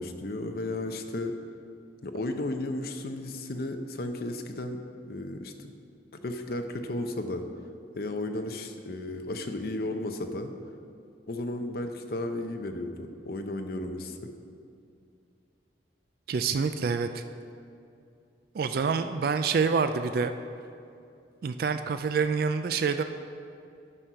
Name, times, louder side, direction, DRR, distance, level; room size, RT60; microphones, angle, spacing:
voice 1, 0.0-1.3 2.0-4.8 5.1-5.7 6.2-7.4 8.0-10.5 11.3-14.3, left 1 dB, 55° left, 6 dB, 0.7 m, -34 dB
voice 2, 16.3-17.2 18.5-20.3 21.4-23.0, right 5 dB, 55° right, 9 dB, 0.3 m, -27 dB
9.8 x 6.2 x 5.5 m, 2.5 s
head